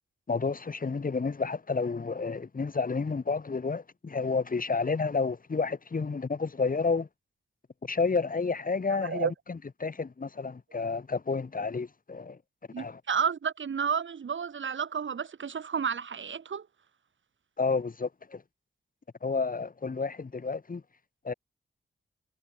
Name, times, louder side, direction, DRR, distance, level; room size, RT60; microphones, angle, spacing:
voice 1, 0.3-7.1 7.8-12.4 12.8-13.0 17.6-18.4 19.2-20.8 21.2-21.3, left 4 dB, 45° left, 3.1 m, -30 dB
voice 2, 9.0-9.3 12.7-16.7, right 6 dB, 80° right, 5.0 m, -31 dB
wide cardioid pair, 85°, 19 cm